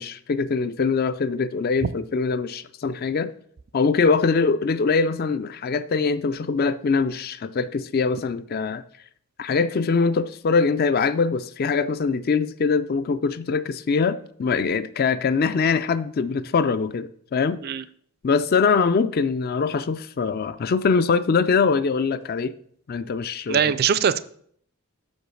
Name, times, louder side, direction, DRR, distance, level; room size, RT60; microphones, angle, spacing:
voice 1, 0.0-3.3 3.7-8.8 9.4-17.6 18.2-22.5 22.9-23.7, left 5 dB, 45° left, 13 dB, 0.4 m, -23 dB
voice 2, 23.5-24.2, right 7 dB, 45° right, 15 dB, 0.4 m, -21 dB
6.3 x 5.2 x 6.2 m, 0.62 s
head